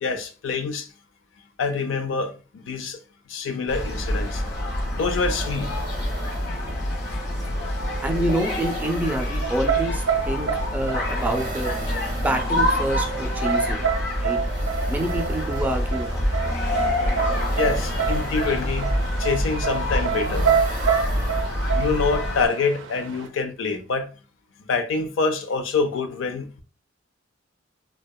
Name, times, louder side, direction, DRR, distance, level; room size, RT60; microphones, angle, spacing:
voice 1, 0.0-0.9 1.6-2.4 2.6-3.0 3.3-4.4 4.9-5.8 17.6-20.5 21.1-21.2 21.8-24.1 24.6-26.6, left 4 dB, 90° left, 0.4 m, -26 dB
sound 1, 3.7-22.5, left 1 dB, 65° left, 0.8 m, -26 dB
sound 2, 4.8-21.9, right 3 dB, 45° right, 0.6 m, -40 dB
voice 2, 8.0-11.7 12.1-13.9 14.2-14.4 14.9-16.4, right 1 dB, 10° right, 0.3 m, -27 dB
sound 3, 9.4-23.3, right 7 dB, 90° right, 0.4 m, -28 dB
2.7 x 2.1 x 2.2 m
head